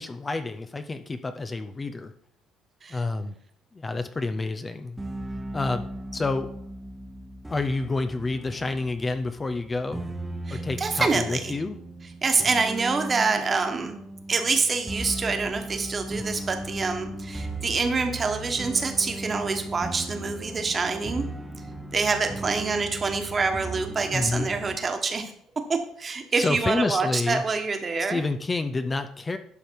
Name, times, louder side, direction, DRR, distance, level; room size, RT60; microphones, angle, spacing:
voice 1, 0.0-2.1 2.9-3.3 3.7-5.0 5.5-5.9 6.1-6.5 7.5-10.1 10.5-11.8 24.1-24.5 26.3-27.4 28.0-29.4, left 3 dB, 20° left, 8 dB, 0.5 m, -29 dB
sound 1, 5.0-24.8, right 2 dB, 10° right, 0.9 m, -37 dB
voice 2, 10.5-11.5 12.2-13.9 14.3-21.2 21.9-25.3 25.7-28.2, right 4 dB, 30° right, 6 dB, 1.3 m, -26 dB
12.0 x 5.2 x 4.7 m, 0.70 s
cardioid pair, 110°, 0 cm